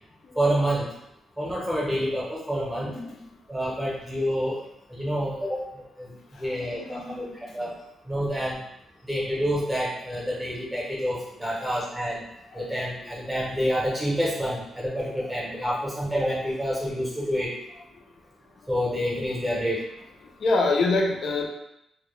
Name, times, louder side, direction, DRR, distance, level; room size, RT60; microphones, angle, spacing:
voice 1, 0.4-0.9 1.4-2.9 3.5-4.6 4.9-6.1 6.4-7.7 8.1-8.6 9.1-12.2 12.5-17.5 18.7-19.8, equal, 5° right, -6 dB, 0.7 m, -28 dB
voice 2, 2.8-3.3 6.3-7.7 12.5-12.7 13.0-13.1 15.3-15.4 18.6-18.7 19.3-19.6 20.2-21.5, left 3 dB, 50° left, 1 dB, 0.4 m, -28 dB
2.2 x 2.1 x 3.0 m, 0.80 s
cardioid pair, 140°, 0 cm